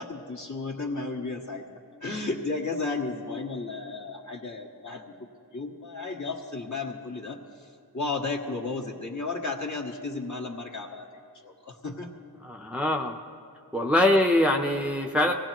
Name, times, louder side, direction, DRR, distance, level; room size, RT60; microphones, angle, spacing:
voice 1, 0.0-5.0 5.5-7.4 7.9-11.1 11.4-12.1, left 3 dB, 45° left, 0 dB, 1.7 m, -33 dB
voice 2, 12.4-13.2 13.7-15.3, left 1 dB, 5° right, 2 dB, 0.8 m, -23 dB
23.5 x 18.0 x 3.0 m, 2.5 s
wide cardioid pair, 65°, 40 cm